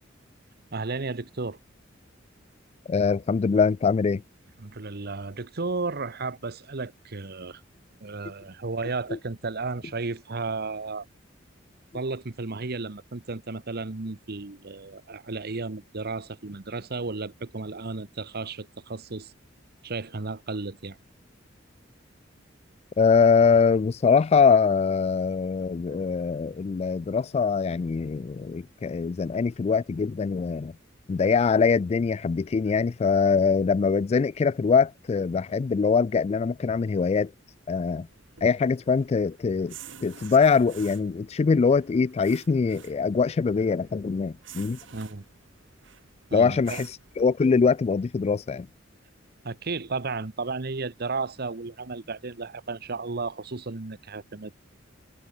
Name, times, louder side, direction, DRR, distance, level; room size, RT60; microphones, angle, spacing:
voice 1, 0.7-1.6 4.6-7.6 8.0-11.1 11.9-19.3 19.8-21.0 44.9-45.2 46.3-46.8 49.4-54.5, right 3 dB, 55° right, 1.1 m, -33 dB
voice 2, 2.9-4.2 9.1-9.2 23.0-30.7 31.1-37.3 37.7-38.1 38.4-39.8 40.0-44.8 46.3-46.9 47.2-48.7, left 5 dB, 35° left, 0.3 m, -23 dB
sound 1, 38.1-47.2, right 7 dB, 75° right, 3.4 m, -49 dB
head